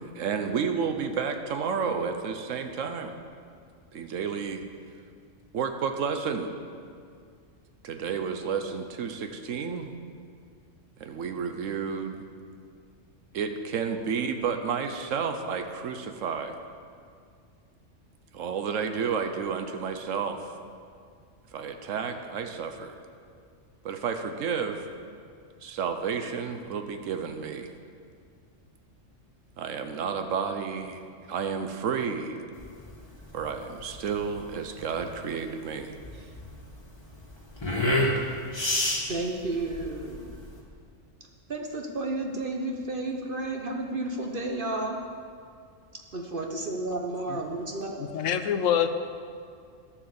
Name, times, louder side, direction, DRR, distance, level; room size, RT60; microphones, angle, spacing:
voice 1, 0.2-3.1 3.9-4.6 5.5-6.5 7.8-9.9 11.0-12.2 13.3-16.6 18.3-20.4 21.5-22.9 23.8-24.8 25.6-27.7 29.6-31.0 31.3-32.4 33.3-35.9, right 6 dB, 85° right, 6 dB, 1.1 m, -31 dB
sound 1, 32.6-40.6, left 1 dB, 20° left, 1.7 m, -30 dB
voice 2, 39.1-40.4 41.5-45.0 46.1-48.1, right 2 dB, 45° right, 1 dB, 1.0 m, -32 dB
voice 3, 48.0-48.9, left 9 dB, 80° left, 9 dB, 1.0 m, -25 dB
12.0 x 7.1 x 6.9 m, 2.2 s
omnidirectional pair, 1.3 m